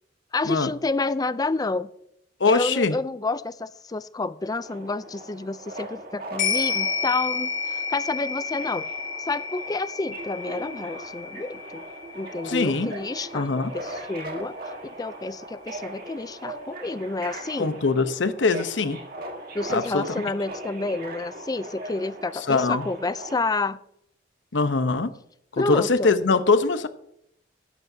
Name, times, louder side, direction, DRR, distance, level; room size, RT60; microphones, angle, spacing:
voice 1, 0.3-1.9 2.5-8.9 9.2-11.8 12.1-13.5 13.7-14.6 14.8-17.7 19.5-23.8 25.6-26.1, left 3 dB, 20° left, 15 dB, 0.4 m, -29 dB
voice 2, 2.4-3.0 12.4-12.9 13.3-13.7 17.6-19.0 19.7-20.0 22.3-22.8 24.5-25.1 25.5-26.9, left 3 dB, 70° left, 11 dB, 0.9 m, -22 dB
Subway metro underground, 4.5-23.3, right 1 dB, 55° right, 2.0 m, -39 dB
sound 1, 6.4-14.9 15.3-15.4, left 5 dB, 55° left, 4.9 m, -31 dB
13.5 x 10.5 x 2.7 m, 0.73 s
head